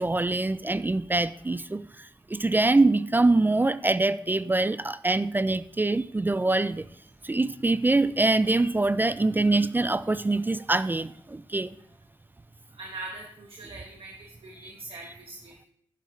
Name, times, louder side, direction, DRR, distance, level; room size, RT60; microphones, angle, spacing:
voice 1, 0.0-1.8 2.3-6.8 7.2-11.7, right 2 dB, 20° right, 0.4 m, -24 dB
voice 2, 12.7-15.7, right 2 dB, 75° right, 1.4 m, -42 dB
10.5 x 10.5 x 3.2 m
cardioid pair, 65°, 10 cm